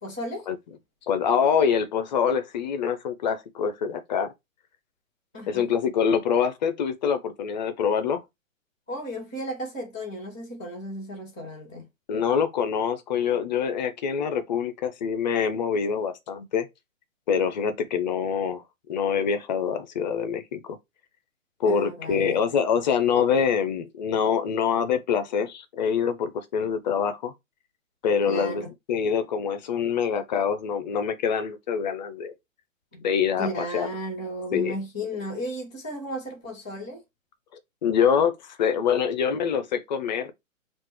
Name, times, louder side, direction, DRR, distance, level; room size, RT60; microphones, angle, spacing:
voice 1, 0.0-0.5 5.3-5.7 8.9-11.8 21.6-22.4 28.3-28.7 32.9-33.0 33.4-37.0, equal, 10° right, 0.3 m, -34 dB
voice 2, 1.1-4.3 5.5-8.2 12.1-16.7 17.3-18.6 18.9-20.8 21.6-27.3 28.0-28.6 28.9-32.3 33.0-33.9 34.5-34.8 37.8-40.3, left 7 dB, 35° left, 0.6 m, -25 dB
5.7 x 2.5 x 3.0 m
hypercardioid pair, 140°, 40 cm